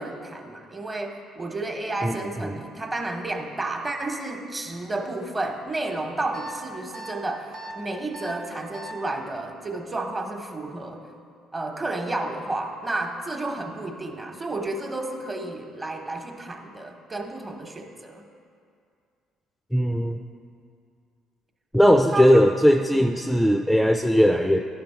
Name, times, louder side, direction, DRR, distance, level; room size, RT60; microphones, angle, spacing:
voice 1, 0.0-11.0 11.5-18.3 22.1-22.2 22.9-23.1, right 2 dB, 25° right, 3 dB, 1.1 m, -31 dB
sound 1, 6.3-6.5 6.9-7.1 7.5-7.7 8.1-8.3 8.7-8.9, right 1 dB, 80° right, 1.2 m, -38 dB
voice 2, 19.7-20.2 21.7-24.7, equal, 5° left, 4 dB, 0.4 m, -18 dB
11.5 x 3.9 x 5.7 m, 2.3 s
supercardioid pair, 65°, 0 cm